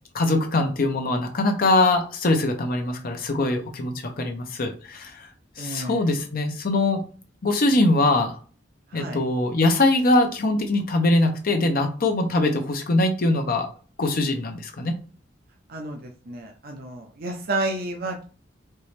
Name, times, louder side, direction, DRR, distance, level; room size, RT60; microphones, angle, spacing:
voice 1, 0.1-5.3 5.6-7.0 7.4-8.4 8.9-13.7 14.0-14.9, left 2 dB, 50° left, 4 dB, 0.7 m, -22 dB
voice 2, 5.6-6.0 8.9-9.2 15.7-18.2, right 2 dB, 50° right, 2 dB, 0.7 m, -31 dB
4.4 x 3.1 x 3.3 m, 0.39 s
head